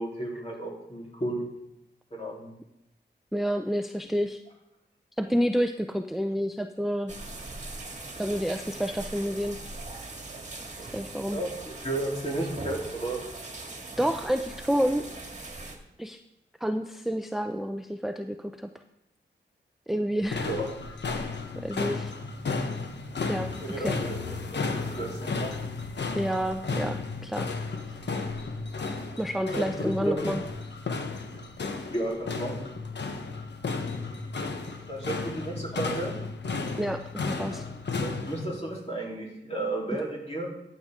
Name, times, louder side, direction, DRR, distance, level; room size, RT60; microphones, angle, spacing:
voice 1, 0.0-1.5 2.1-2.5 11.3-13.2 20.3-20.7 23.6-25.5 29.5-30.3 31.8-32.7 34.9-36.2 38.0-40.5, right 1 dB, 35° left, -3 dB, 3.5 m, -33 dB
voice 2, 3.3-4.4 5.2-7.1 8.2-9.6 10.9-11.4 14.0-15.1 16.0-16.2 16.6-18.7 19.9-20.5 21.5-22.1 23.3-23.5 23.8-24.0 26.2-27.5 29.2-30.4 36.8-37.7, equal, ahead, 6 dB, 0.5 m, -29 dB
sound 1, 7.1-15.8, right 2 dB, 40° right, 2.0 m, -40 dB
sound 2, 20.2-38.5, left 4 dB, 65° left, 1.1 m, -33 dB
14.0 x 8.0 x 3.7 m, 0.90 s
cardioid pair, 75°, 19 cm